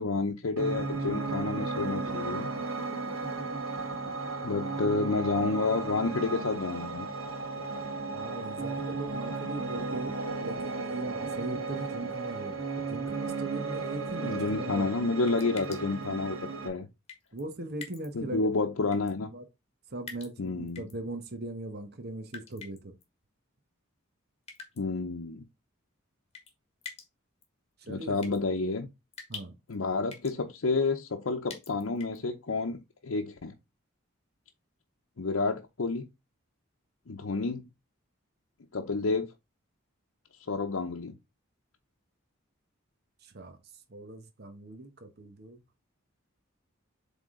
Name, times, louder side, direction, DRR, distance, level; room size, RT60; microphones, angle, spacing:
voice 1, 0.0-2.5 4.4-7.1 14.2-16.4 16.6-16.9 18.1-19.3 20.4-20.8 24.8-25.5 27.9-28.9 29.7-33.5 35.2-36.1 37.1-37.7 38.7-39.3 40.5-41.2, left 3 dB, 85° left, 0.7 m, -30 dB
Piano, 0.6-16.7, right 3 dB, 90° right, 1.5 m, -35 dB
voice 2, 8.1-10.1 10.4-12.6 12.9-15.0 17.3-18.5 19.3-19.4 19.9-22.9 27.8-28.3 29.3-29.5 43.2-43.6 43.9-45.6, right 2 dB, 50° right, 1.1 m, -39 dB
sound 1, 15.3-16.0 17.1-17.4 17.8-18.1 18.9-19.1 20.1-20.9 22.3-23.0 24.5-24.8 26.3-26.5 26.8-27.1 27.4-27.5 28.2-28.4 29.1-29.8 30.1-30.4 31.5-32.2, left 5 dB, 30° left, 1.6 m, -45 dB
7.6 x 3.6 x 3.7 m
head